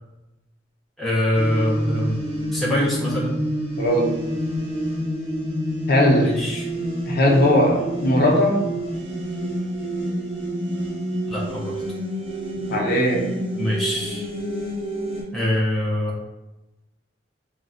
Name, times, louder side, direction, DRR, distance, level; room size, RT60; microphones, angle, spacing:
voice 1, 1.0-2.2 2.5-3.4 6.2-6.7 11.3-11.7 13.6-14.3 15.3-16.2, left 1 dB, ahead, -6 dB, 0.4 m, -24 dB
sound 1, 1.3-15.2, equal, 30° right, 0.9 m, -28 dB
voice 2, 3.8-4.2 5.9-6.4 7.1-8.7 12.7-13.3, equal, 50° left, -2 dB, 0.5 m, -19 dB
3.2 x 2.1 x 2.4 m, 1.0 s
head